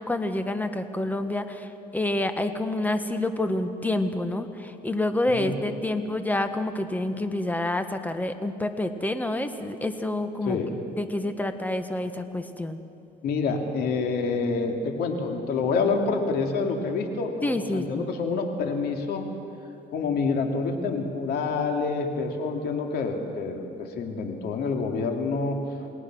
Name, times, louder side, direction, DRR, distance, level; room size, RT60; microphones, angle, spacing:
voice 1, 0.0-10.6 11.0-12.8 17.4-18.1, left 1 dB, 10° left, 8 dB, 1.4 m, -28 dB
voice 2, 13.2-19.2 19.9-25.6, left 4 dB, 70° left, 3 dB, 2.7 m, -27 dB
28.5 x 19.0 x 6.3 m, 2.8 s
cardioid pair, 110°, 17 cm